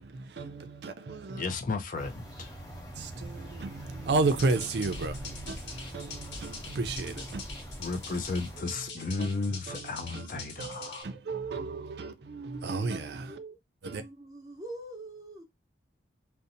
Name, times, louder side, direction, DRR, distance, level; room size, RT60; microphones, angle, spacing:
voice 1, 0.0-1.4 3.0-7.4 9.2-9.3 9.7-13.4 13.8-14.0, right 3 dB, 65° right, 0.4 m, -33 dB
voice 2, 1.3-2.5 7.8-11.1, left 3 dB, 45° left, 0.4 m, -34 dB
sound 1, 1.9-8.6, equal, 20° left, 0.8 m, -43 dB
sound 2, 4.2-11.0, left 4 dB, 85° left, 0.9 m, -44 dB
voice 3, 13.3-13.6 13.9-15.4, right 2 dB, 20° right, 0.7 m, -44 dB
2.7 x 2.0 x 2.5 m
head